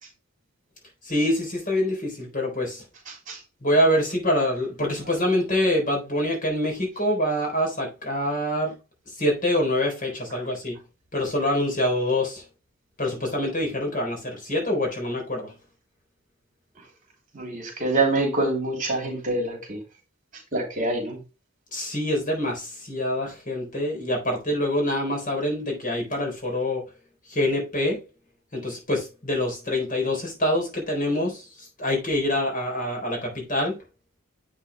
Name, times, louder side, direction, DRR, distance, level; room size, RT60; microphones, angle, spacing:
voice 1, 1.0-2.8 3.6-8.7 9.2-10.8 11.1-12.4 13.0-15.5 21.7-26.9 27.3-28.0 28.5-33.8, left 1 dB, 40° left, 4.0 m, -25 dB
voice 2, 3.1-3.4 17.3-19.8 20.5-21.2, right 2 dB, 40° right, 3.5 m, -26 dB
8.2 x 5.9 x 3.4 m
head